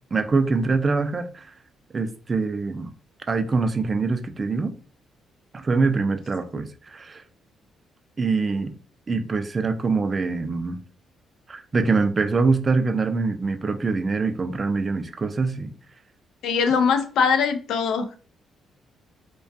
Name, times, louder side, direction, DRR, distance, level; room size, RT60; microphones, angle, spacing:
voice 1, 0.1-1.5 1.9-2.9 3.3-4.8 5.5-7.2 8.2-8.7 9.1-10.8 11.5-15.7, right 4 dB, 35° right, 0.4 m, -24 dB
voice 2, 16.4-18.1, left 6 dB, 75° left, 0.4 m, -21 dB
2.3 x 2.2 x 2.5 m
cardioid pair, 90°, 0 cm